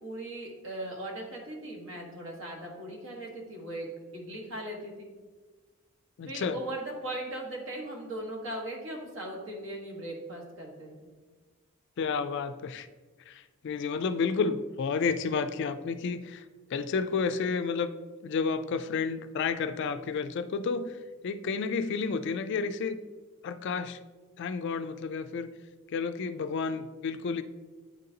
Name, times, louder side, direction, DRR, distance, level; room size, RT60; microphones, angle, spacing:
voice 1, 0.0-3.9 4.1-5.1 6.2-11.1, right 1 dB, 60° right, -1 dB, 1.4 m, -39 dB
voice 2, 6.2-6.6 12.0-12.9 13.3-16.4 16.7-17.9 18.2-23.0 23.4-24.0 24.4-25.5 25.9-27.4, left 5 dB, 55° left, 10 dB, 0.3 m, -31 dB
9.1 x 3.8 x 2.8 m, 1.3 s
head